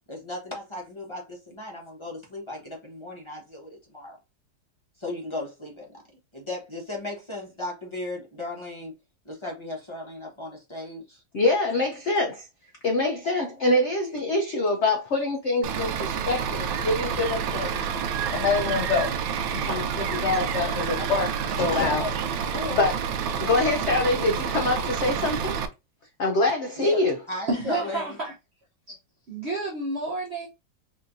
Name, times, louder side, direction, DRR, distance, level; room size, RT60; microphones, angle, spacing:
voice 1, 0.1-4.2 5.0-6.0 6.3-8.9 9.2-11.2 21.0-21.2 21.8-22.1 22.5-22.8 26.8-27.0 27.3-28.2, left 2 dB, 20° left, 0.8 m, -36 dB
voice 2, 11.3-12.5 12.8-17.9 18.3-19.1 19.5-21.3 21.6-22.1 22.7-23.0 23.4-25.6 26.2-27.2, left 2 dB, 65° left, 0.6 m, -25 dB
Bus / Idling, 15.6-25.7, right 7 dB, 90° right, 1.4 m, -29 dB
sound 1, 16.6-22.6, right 10 dB, 70° right, 1.0 m, -38 dB
voice 3, 27.5-28.3 28.9-29.0 29.3-30.5, right 2 dB, 55° right, 0.7 m, -30 dB
4.1 x 2.8 x 2.5 m
omnidirectional pair, 2.0 m